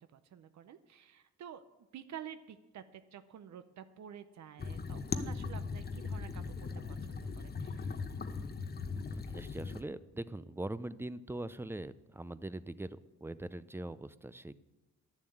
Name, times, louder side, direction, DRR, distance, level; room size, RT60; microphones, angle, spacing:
voice 1, 0.1-1.6 1.9-7.9, right 9 dB, 65° right, 10 dB, 0.7 m, -50 dB
sound 1, 4.6-9.8, left 4 dB, 30° left, 0.9 m, -39 dB
voice 2, 9.1-14.6, right 1 dB, 10° right, 16 dB, 0.4 m, -42 dB
11.5 x 7.2 x 7.9 m, 1.1 s
cardioid pair, 95°, 31 cm